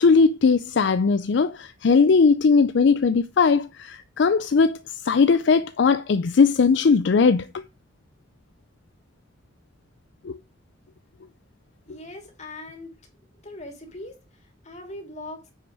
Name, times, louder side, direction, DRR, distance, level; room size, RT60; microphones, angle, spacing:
voice 1, 0.0-4.8 5.0-7.5 10.2-10.3, left 5 dB, 70° left, 0.4 m, -19 dB
voice 2, 11.9-12.9 13.4-15.5, left 2 dB, 40° left, 3.0 m, -40 dB
9.5 x 5.8 x 4.8 m
head